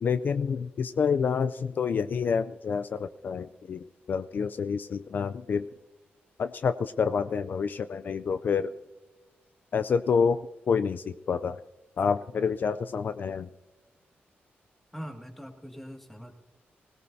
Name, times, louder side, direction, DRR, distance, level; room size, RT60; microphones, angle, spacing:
voice 1, 0.0-5.7 6.4-8.7 9.7-10.4 10.7-11.6 12.0-13.5, left 6 dB, 50° left, 11 dB, 0.4 m, -28 dB
voice 2, 14.9-16.3, equal, 5° left, 3 dB, 2.0 m, -42 dB
24.5 x 17.0 x 2.7 m, 1.2 s
cardioid pair, 110°, 4 cm